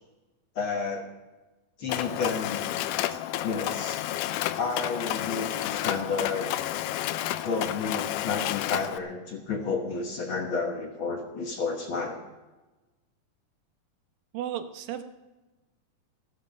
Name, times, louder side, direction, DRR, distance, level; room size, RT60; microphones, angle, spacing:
voice 1, 0.5-1.1 1.8-2.7 3.1-4.0 4.6-6.5 7.4-12.2, left 4 dB, 60° left, 3 dB, 1.4 m, -31 dB
Mechanisms, 1.9-9.0, left 13 dB, 80° left, 1.9 m, -31 dB
voice 2, 14.3-15.0, right 10 dB, 85° right, 8 dB, 2.8 m, -34 dB
15.0 x 13.0 x 5.2 m, 1.1 s
omnidirectional pair, 4.0 m